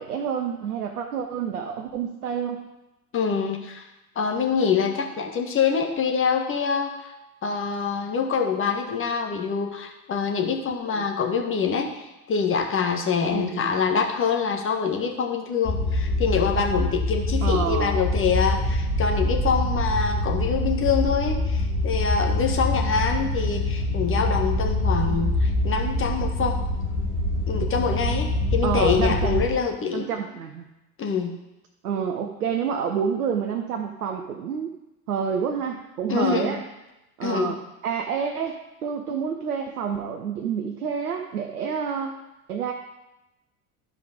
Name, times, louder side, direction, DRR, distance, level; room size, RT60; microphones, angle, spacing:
voice 1, 0.0-2.7 11.0-11.1 13.3-13.7 17.4-17.9 28.6-29.4 29.9-30.6 31.8-34.7 35.1-36.6 37.2-37.6 37.8-42.2 42.5-42.7, right 7 dB, 75° right, 4 dB, 0.9 m, -28 dB
voice 2, 3.1-3.8 4.1-7.1 7.4-26.6 27.5-30.1 31.0-31.3 36.1-36.6 37.2-37.6 39.1-39.2, left 6 dB, 25° left, 2 dB, 1.6 m, -25 dB
sound 1, 15.7-29.5, left 1 dB, 65° left, 2.3 m, -25 dB
12.5 x 5.0 x 5.0 m, 0.96 s
figure-of-eight pair, 70°, 46 cm